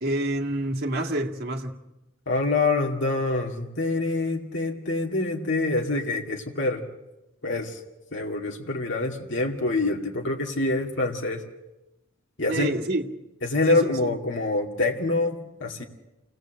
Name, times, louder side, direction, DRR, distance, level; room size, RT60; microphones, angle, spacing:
voice 1, 0.0-1.8 12.5-13.1 13.7-14.1, right 1 dB, 50° right, 2.1 m, -28 dB
voice 2, 2.3-6.8 7.4-7.8 8.1-11.4 12.4-12.7 13.4-15.8, left 2 dB, 65° left, 2.4 m, -26 dB
28.5 x 19.0 x 7.7 m
head